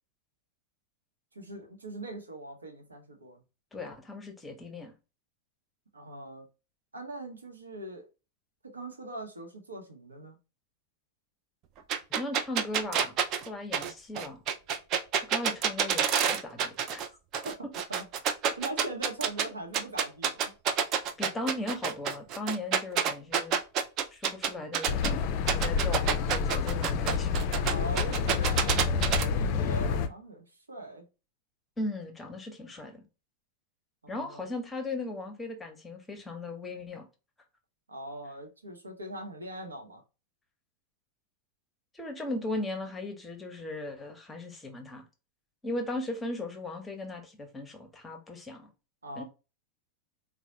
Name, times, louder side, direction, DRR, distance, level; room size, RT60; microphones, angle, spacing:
voice 1, 1.3-3.4 5.9-6.5 6.9-8.1 8.6-10.4 17.4-17.6 17.9-18.1 18.4-20.5 27.6-31.1 34.0-34.5 37.9-40.0 49.0-49.2, right 1 dB, 75° right, 0.8 m, -41 dB
voice 2, 3.7-4.9 12.2-13.1 13.5-14.4 15.3-16.1 16.3-17.0 21.2-23.6 24.1-25.2 25.5-27.4 31.8-33.0 34.1-37.1 41.9-45.0 45.6-48.7 49.2-49.3, left 2 dB, 10° left, 0.8 m, -37 dB
sound 1, 11.9-17.1 17.3-19.4 19.7-25.1 25.5-29.2, right 7 dB, 40° right, 0.4 m, -28 dB
sound 2, 24.9-30.1, left 5 dB, 45° left, 0.4 m, -28 dB
3.9 x 2.1 x 2.8 m
figure-of-eight pair, 90°, 0 cm